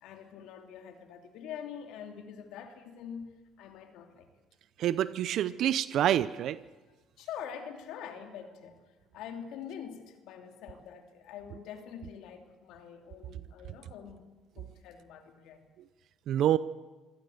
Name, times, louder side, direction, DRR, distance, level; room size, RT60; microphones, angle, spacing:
voice 1, 0.0-4.3 7.2-14.3 14.6-15.6, left 8 dB, 75° left, 5 dB, 2.9 m, -45 dB
voice 2, 4.8-6.6 16.3-16.6, right 11 dB, 65° right, 16 dB, 0.6 m, -27 dB
24.5 x 16.5 x 8.0 m, 1.3 s
supercardioid pair, 75°, 0 cm